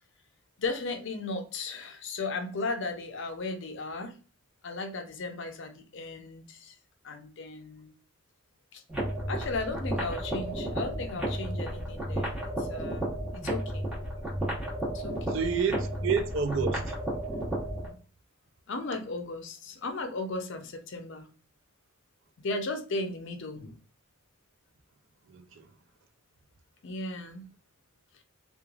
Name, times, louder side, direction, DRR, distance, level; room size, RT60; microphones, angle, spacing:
voice 1, 0.6-4.1 4.6-6.8 7.0-7.9 8.7-8.8 9.3-13.8 14.8-15.4 18.7-21.3 22.4-23.7 26.8-27.5, left 3 dB, 55° left, 0.5 m, -36 dB
sound 1, 8.9-17.9, right 1 dB, 5° right, 1.0 m, -33 dB
voice 2, 15.3-17.0 25.3-25.6, right 5 dB, 60° right, 0.4 m, -29 dB
3.0 x 2.3 x 2.3 m
head